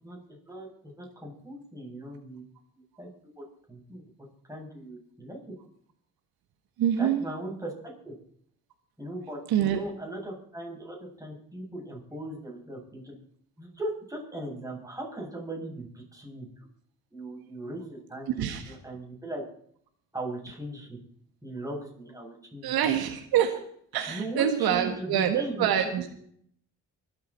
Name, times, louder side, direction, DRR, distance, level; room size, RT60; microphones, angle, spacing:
voice 1, 0.0-2.4 3.0-3.1 3.4-4.0 4.5-5.5 7.0-8.1 9.0-13.1 13.6-16.7 17.1-19.4 20.1-21.0 21.4-22.7 24.1-25.9, right 1 dB, 10° right, -2 dB, 7.9 m, -38 dB
voice 2, 6.8-7.2 9.5-9.8 18.4-18.7 22.6-23.6 23.9-26.1, right 9 dB, 70° right, 6 dB, 1.6 m, -26 dB
24.5 x 8.9 x 4.4 m, 0.64 s
hypercardioid pair, 50°, 38 cm